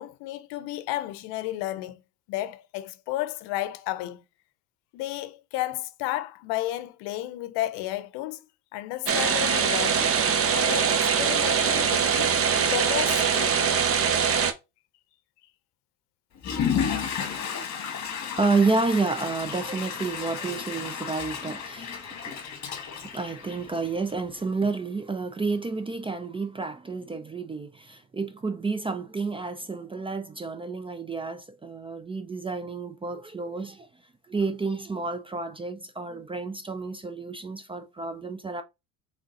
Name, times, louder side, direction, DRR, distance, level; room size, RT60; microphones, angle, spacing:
voice 1, 0.0-2.0 2.3-4.2 4.9-8.4 8.7-10.2 10.5-12.4 12.7-13.6, left 15 dB, 70° left, 0.7 m, -32 dB
sound 1, 9.1-14.5, right 6 dB, 35° right, 0.8 m, -23 dB
Water / Toilet flush, 16.3-24.1, left 7 dB, 40° left, 1.4 m, -32 dB
voice 2, 18.4-22.6 22.9-33.9 34.3-38.6, right 4 dB, 15° right, 0.4 m, -30 dB
3.7 x 3.5 x 4.0 m
supercardioid pair, 95°, 42 cm